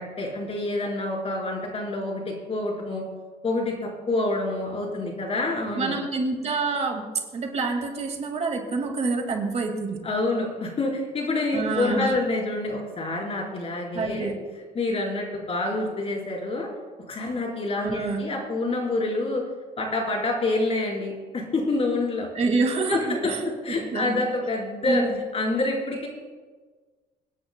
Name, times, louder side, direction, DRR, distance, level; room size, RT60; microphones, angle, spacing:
voice 1, 0.0-3.0 3.4-5.9 10.0-14.3 14.7-16.7 17.1-19.4 19.8-22.3 22.9-25.0 25.3-26.1, left 2 dB, 35° left, -1 dB, 4.3 m, -27 dB
voice 2, 5.8-7.1 7.3-10.0 11.5-12.2 13.9-14.4 17.8-18.3 22.3-23.4 23.9-24.2 24.9-25.1, right 3 dB, 40° right, 3 dB, 2.1 m, -27 dB
26.0 x 10.0 x 2.3 m, 1.4 s
cardioid pair, 110°, 17 cm